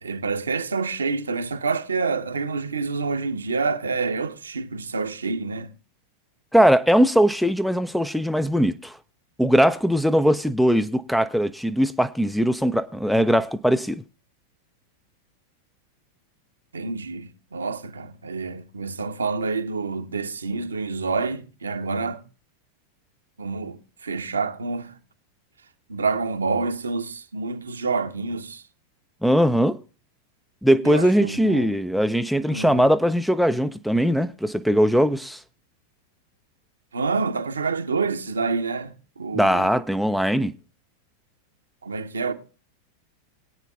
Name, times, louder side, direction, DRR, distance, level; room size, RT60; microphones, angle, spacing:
voice 1, 0.0-5.7 16.7-22.2 23.4-25.0 25.9-28.6 30.8-31.7 32.5-32.9 36.9-39.7 41.8-42.3, right 4 dB, 75° right, 0.8 m, -28 dB
voice 2, 6.5-9.0 9.4-14.0 29.2-29.8 30.6-35.4 39.3-40.5, equal, ahead, 0.4 m, -20 dB
22.0 x 9.0 x 2.3 m
figure-of-eight pair, 90°, 0 cm